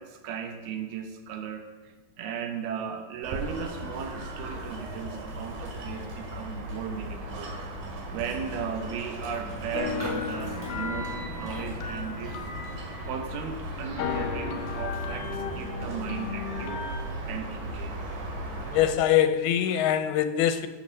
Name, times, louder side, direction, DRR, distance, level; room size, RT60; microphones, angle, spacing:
voice 1, 0.0-7.5 8.1-12.4 13.0-16.9 17.3-18.0, right 7 dB, 85° right, 6 dB, 3.1 m, -36 dB
sound 1, 3.2-18.9, right 1 dB, 65° right, 3.8 m, -37 dB
Raindrop, 8.1-8.5 8.7-8.8 9.2-12.8 13.2-13.5, equal, 5° left, 4.2 m, -43 dB
sound 2, 9.7-13.6 14.0-17.1, left 6 dB, 75° left, 3.0 m, -35 dB
voice 2, 18.7-20.7, left 10 dB, 90° left, 10 dB, 2.8 m, -23 dB
16.5 x 7.2 x 6.3 m, 1.3 s
omnidirectional pair, 4.4 m